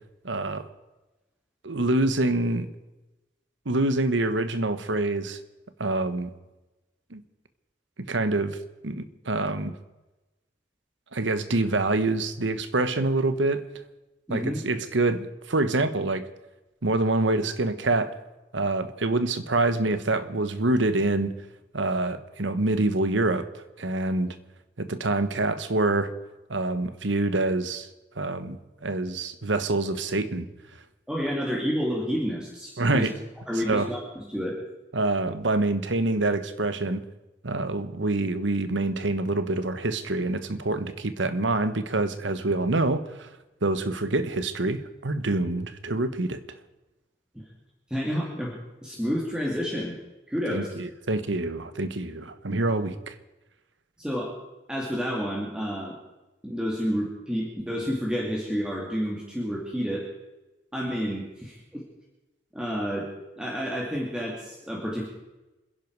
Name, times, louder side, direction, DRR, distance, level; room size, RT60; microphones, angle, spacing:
voice 1, 0.2-0.7 1.6-2.7 3.6-5.4 5.8-6.3 7.1-7.2 8.0-8.6 8.8-9.7 11.1-13.6 14.3-16.2 16.8-18.1 18.5-21.3 21.7-23.5 23.8-24.4 24.8-26.1 26.5-27.9 28.2-28.6 28.8-30.5 32.8-33.1 33.7-33.9 34.9-37.0 37.4-43.3 43.6-46.4 50.5-53.1, right 2 dB, 85° right, 11 dB, 1.2 m, -26 dB
voice 2, 14.3-14.6 31.1-33.1 33.5-34.5 47.3-47.5 47.9-50.0 50.3-50.7 54.0-54.3 54.7-55.9 56.4-60.1 60.7-61.8 62.5-63.1 63.4-65.1, equal, 5° right, -3 dB, 2.4 m, -30 dB
27.0 x 11.0 x 4.7 m, 1.1 s
head